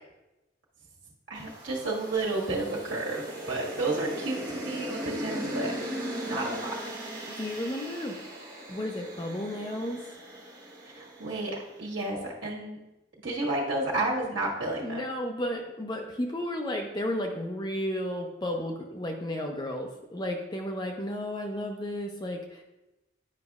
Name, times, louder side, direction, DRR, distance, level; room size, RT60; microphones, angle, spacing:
voice 1, 1.3-5.9 6.2-6.7 10.8-12.8 13.2-15.0, right 2 dB, 75° right, -4 dB, 1.6 m, -31 dB
sound 1, 1.4-11.7, right 1 dB, 20° right, 1.1 m, -38 dB
voice 2, 7.3-8.2 8.7-10.0 14.8-22.6, left 1 dB, 20° left, 2 dB, 0.5 m, -33 dB
9.6 x 5.1 x 2.4 m, 0.98 s
head